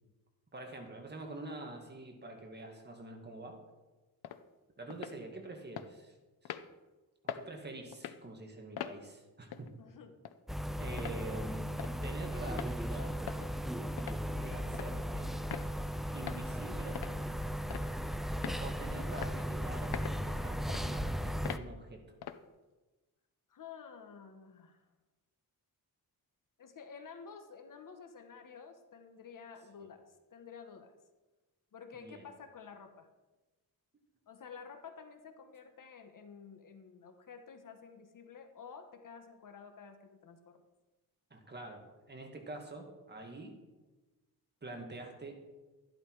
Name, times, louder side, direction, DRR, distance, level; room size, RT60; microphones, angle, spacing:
voice 1, 0.5-3.6 4.8-6.1 6.4-6.5 7.3-9.7 10.8-11.7 12.0-13.2 14.3-15.3 16.1-17.0 18.6-19.9 20.2-22.0 29.8-29.9 31.9-32.3 41.3-43.6 44.6-45.4, right 2 dB, 25° right, 3 dB, 2.1 m, -46 dB
sound 1, 4.2-4.4 4.9-5.2 5.8-5.9 6.4-6.7 7.3-7.5 7.9-8.2 8.8-9.0 9.5-9.7 10.2-10.3 11.0-11.2 11.8-11.9 12.5-12.7 13.3-13.5 14.0-14.2 14.7-14.9 15.5-15.7 16.3-16.4 16.9-17.2 17.7-18.0 18.4-18.6 19.2-19.3 19.9-20.2 20.7-20.8 21.4-21.6 22.2-22.4, left 10 dB, 85° left, 0.8 m, -41 dB
voice 2, 9.8-10.2 23.5-24.8 26.6-30.9 31.7-33.1 34.3-40.6, left 6 dB, 55° left, 7 dB, 1.3 m, -51 dB
sound 2, 10.5-21.6, equal, ahead, 0.4 m, -37 dB
13.0 x 11.5 x 4.8 m, 1.2 s
wide cardioid pair, 145°, 37 cm